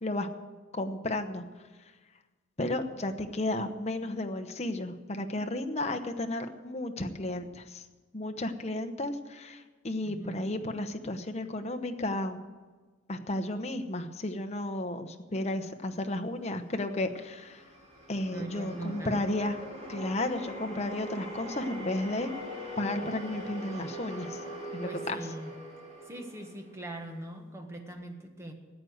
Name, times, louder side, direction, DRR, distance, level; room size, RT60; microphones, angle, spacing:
voice 1, 0.7-1.4 2.6-7.9 8.1-12.4 13.1-17.6 18.1-19.6 19.9-22.3 22.8-24.4 24.7-25.2, left 1 dB, 35° left, 6 dB, 0.9 m, -33 dB
voice 2, 10.0-10.4 18.3-19.3 23.0-23.1 24.8-25.6 26.0-28.5, right 1 dB, 15° right, 3 dB, 1.5 m, -41 dB
sound 1, 16.7-27.1, right 1 dB, 35° right, 3.7 m, -42 dB
14.0 x 9.3 x 7.9 m, 1.3 s
head